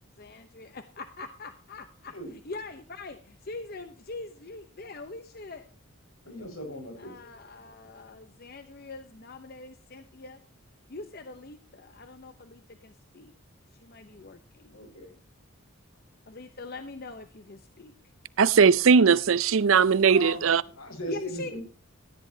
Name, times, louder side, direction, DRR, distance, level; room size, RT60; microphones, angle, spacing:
voice 1, 0.2-2.1 2.4-5.7 7.0-10.4 10.9-13.3 13.8-14.8 16.3-17.9 21.1-21.6, left 3 dB, 45° left, 0.8 m, -42 dB
voice 2, 6.3-7.1 14.7-15.1 20.0-21.6, equal, 80° left, 5.4 m, -39 dB
voice 3, 18.4-20.6, right 6 dB, 70° right, 0.5 m, -19 dB
13.5 x 10.0 x 2.8 m
head